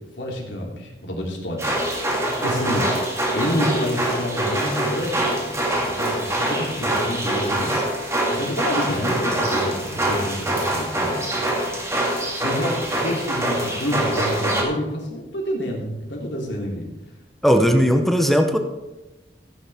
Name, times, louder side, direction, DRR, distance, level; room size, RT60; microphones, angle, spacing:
voice 1, 0.2-1.8 2.4-2.9 3.3-7.9 8.3-11.4 12.3-16.9, left 1 dB, 85° left, -2 dB, 3.2 m, -28 dB
sound 1, 1.6-14.6, right 1 dB, 15° right, 2.0 m, -24 dB
voice 2, 17.4-18.6, equal, ahead, 5 dB, 0.8 m, -17 dB
15.5 x 9.7 x 3.6 m, 1.0 s
head